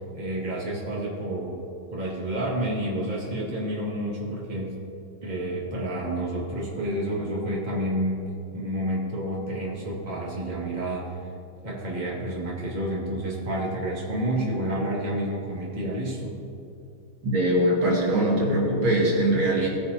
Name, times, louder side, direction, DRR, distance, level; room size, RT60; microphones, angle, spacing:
voice 1, 0.1-1.6 1.9-4.7 5.2-8.2 8.5-11.2 11.6-16.4, right 1 dB, 20° right, -5 dB, 2.2 m, -29 dB
voice 2, 17.2-19.7, right 1 dB, 75° right, -4 dB, 3.0 m, -22 dB
18.0 x 9.4 x 2.8 m, 2.7 s
omnidirectional pair, 2.2 m